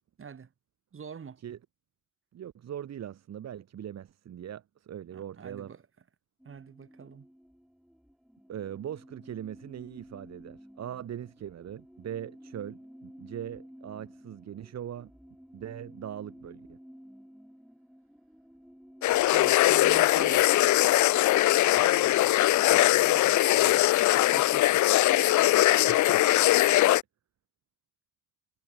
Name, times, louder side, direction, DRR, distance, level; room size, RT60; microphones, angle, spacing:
voice 1, 0.2-0.5 0.9-1.4 5.1-5.8 6.4-7.3 19.2-20.5 24.1-24.8, right 6 dB, 45° right, 6.5 m, -45 dB
voice 2, 2.3-5.7 8.5-15.1 15.5-16.8 21.7-22.3 22.7-23.8 25.8-26.2, right 10 dB, 60° right, 2.2 m, -41 dB
sound 1, 6.4-21.4, equal, ahead, 6.2 m, -52 dB
sound 2, 19.0-27.0, left 15 dB, 75° left, 0.7 m, -21 dB
cardioid pair, 90°, 30 cm